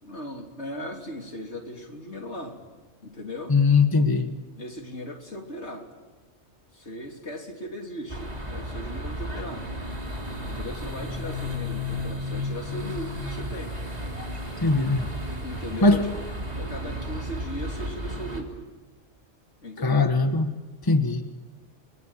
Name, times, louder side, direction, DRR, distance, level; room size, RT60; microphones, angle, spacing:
voice 1, 0.0-2.6 3.0-3.5 4.6-5.9 6.7-9.7 10.4-13.8 15.4-16.1 16.5-18.7 19.6-20.2 20.9-21.2, equal, 65° left, 2 dB, 3.5 m, -38 dB
voice 2, 3.5-4.3 14.6-15.1 15.8-16.0 19.8-20.5 20.9-21.2, left 3 dB, 20° left, 6 dB, 1.4 m, -20 dB
sound 1, 8.1-18.4, left 1 dB, 35° right, 3.4 m, -33 dB
29.5 x 21.5 x 9.0 m, 1.3 s
omnidirectional pair, 1.3 m